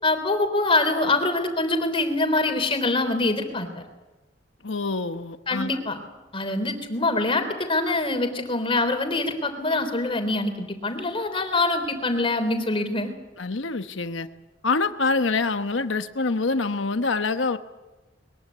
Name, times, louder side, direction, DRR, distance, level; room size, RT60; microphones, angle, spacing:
voice 1, 0.0-3.7 5.5-6.0 6.3-13.1, left 2 dB, 30° left, 7 dB, 3.6 m, -24 dB
voice 2, 4.6-5.7 13.4-14.3 14.6-17.6, left 3 dB, 85° left, 9 dB, 1.1 m, -25 dB
22.0 x 22.0 x 8.5 m, 1.1 s
head